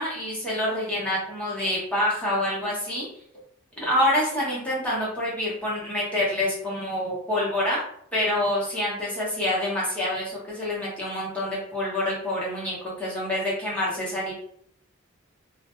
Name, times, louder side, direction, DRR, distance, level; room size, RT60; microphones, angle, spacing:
voice 1, 0.0-3.1 3.8-7.8 8.1-14.3, left 1 dB, 5° left, -7 dB, 0.7 m, -27 dB
2.1 x 2.1 x 2.9 m, 0.67 s
head